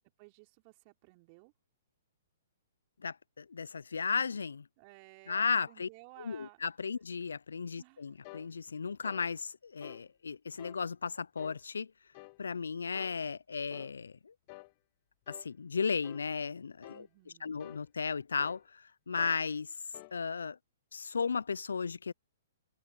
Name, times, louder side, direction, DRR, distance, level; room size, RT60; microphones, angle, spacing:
voice 1, 0.2-1.5 4.8-6.6 7.8-8.2 16.9-17.6, right 30 dB, 40° right, 4.7 m, -56 dB
voice 2, 3.0-4.7 5.3-5.9 6.2-11.9 12.4-14.3 15.3-17.1 17.4-19.7 20.1-20.6 20.9-22.1, left 5 dB, 75° left, 0.5 m, -35 dB
sound 1, 8.2-8.5 9.0-9.3 9.8-10.1 10.6-10.8 11.4-11.6 12.1-12.4 12.9-13.2 13.7-13.9 14.5-14.7 15.3-15.5 16.0-16.3 16.8-17.1 17.6-17.8 18.4-18.6 19.2-19.4 19.9-20.2, left 26 dB, 40° left, 1.6 m, -50 dB
figure-of-eight pair, 120°, 0 cm